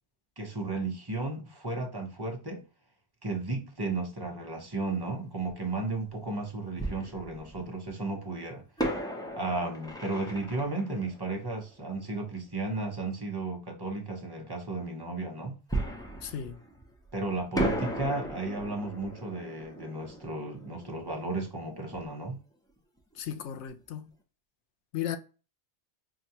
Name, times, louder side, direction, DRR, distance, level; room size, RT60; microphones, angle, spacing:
voice 1, 0.4-2.6 3.2-8.6 9.3-15.6 17.1-22.4, right 3 dB, 25° right, 0.7 m, -34 dB
Fireworks, 5.5-5.6 6.8-7.9 8.8-12.2 15.7-17.1 17.5-22.1 22.3-22.4 23.0-23.2, right 1 dB, 5° left, 0.4 m, -36 dB
voice 2, 16.2-16.6 23.2-24.1 24.9-25.2, left 10 dB, 85° left, 0.9 m, -35 dB
4.6 x 2.3 x 2.7 m
omnidirectional pair, 1.1 m